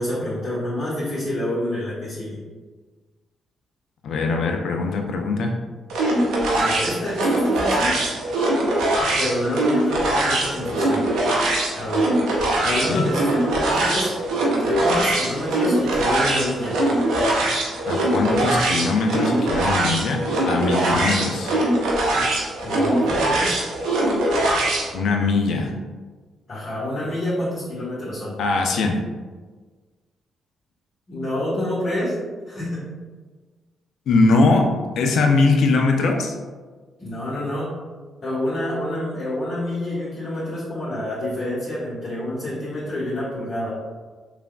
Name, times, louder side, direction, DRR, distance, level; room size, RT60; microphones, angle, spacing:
voice 1, 0.0-2.4 6.5-8.0 9.2-11.0 11.7-12.1 12.6-14.1 14.7-16.8 20.9-21.0 22.6-23.6 26.5-28.4 31.1-32.2 32.5-32.8 37.0-37.7 38.2-43.7, left 1 dB, 50° left, -11 dB, 1.2 m, -27 dB
voice 2, 4.0-5.5 12.9-13.1 17.9-21.5 24.9-25.7 28.4-29.0 34.1-34.6 35.0-36.3, left 3 dB, 70° left, 3 dB, 0.4 m, -21 dB
sound 1, 5.9-24.9, right 1 dB, 75° right, 0.6 m, -22 dB
3.3 x 2.4 x 2.2 m, 1.4 s
hypercardioid pair, 45°, 0 cm